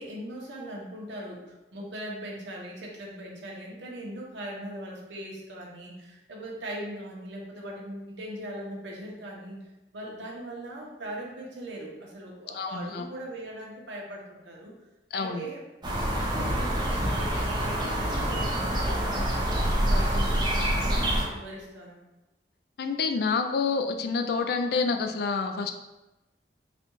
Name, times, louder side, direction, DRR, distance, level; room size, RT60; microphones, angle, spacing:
voice 1, 0.0-9.6 9.9-14.7 15.1-15.6 16.5-21.0 21.3-22.0, right 1 dB, 90° right, -2 dB, 0.8 m, -40 dB
voice 2, 12.5-13.1 15.1-15.5 22.8-25.7, left 4 dB, 60° left, 5 dB, 0.3 m, -28 dB
sound 1, 15.8-21.2, right 1 dB, 25° right, 0.6 m, -26 dB
4.1 x 2.3 x 3.0 m, 1.0 s
head